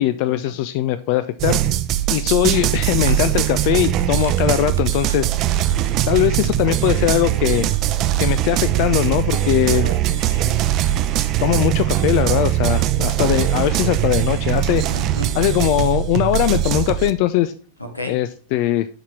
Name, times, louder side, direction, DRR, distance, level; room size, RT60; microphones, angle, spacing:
voice 1, 0.0-1.6 2.1-5.4 6.1-7.7 8.2-9.9 11.4-14.8 15.3-17.5 18.1-18.9, left 14 dB, 45° left, 14 dB, 0.4 m, -20 dB
sound 1, 1.4-17.1, right 13 dB, 35° right, 0.7 m, -21 dB
Crackle, 2.7-13.2, right 6 dB, 70° right, 1.6 m, -36 dB
voice 2, 9.4-10.7 14.9-15.4 17.9-18.2, left 1 dB, 85° left, 4 dB, 1.7 m, -34 dB
11.0 x 4.3 x 4.5 m, 0.40 s
figure-of-eight pair, 90°, 0 cm